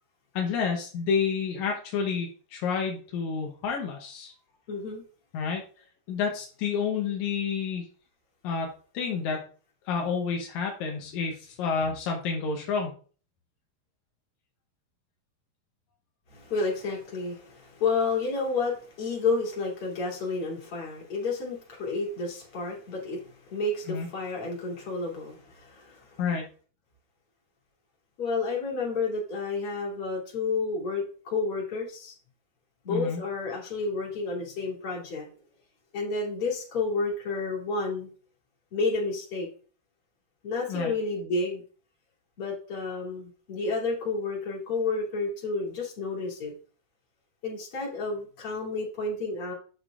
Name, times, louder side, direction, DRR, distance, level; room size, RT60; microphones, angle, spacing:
voice 1, 0.3-4.3 5.3-5.6 6.1-7.9 8.4-9.5 9.9-12.9 23.9-24.1 26.2-26.4 32.9-33.2 40.7-40.9, left 5 dB, 75° left, 1 dB, 1.7 m, -29 dB
voice 2, 4.7-5.0 16.3-26.2 28.2-32.1 32.8-35.3 35.9-38.1 38.7-39.5 40.4-41.6 42.4-46.5 47.4-49.5, left 3 dB, 40° left, -4 dB, 3.2 m, -30 dB
8.9 x 6.5 x 2.5 m, 0.40 s
omnidirectional pair, 4.5 m